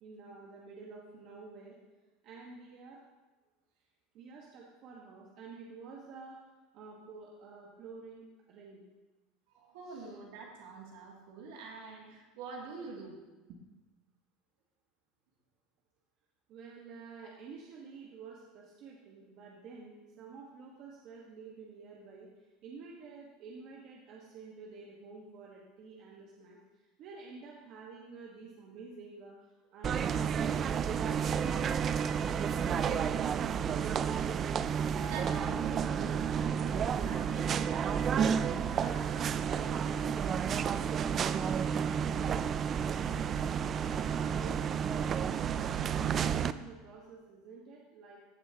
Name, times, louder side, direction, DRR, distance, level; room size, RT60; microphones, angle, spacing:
voice 1, 0.0-1.8 2.2-3.0 4.1-6.4 6.7-8.8 9.9-10.1 16.5-31.6 32.6-33.6 44.0-48.3, right 4 dB, 50° right, -2 dB, 1.4 m, -50 dB
voice 2, 9.5-13.2 34.9-40.5, right 4 dB, 75° right, -2 dB, 2.5 m, -46 dB
sound 1, 29.8-46.5, right 7 dB, 35° right, 0.3 m, -31 dB
14.5 x 6.9 x 2.9 m, 1.2 s
supercardioid pair, 115°, 0 cm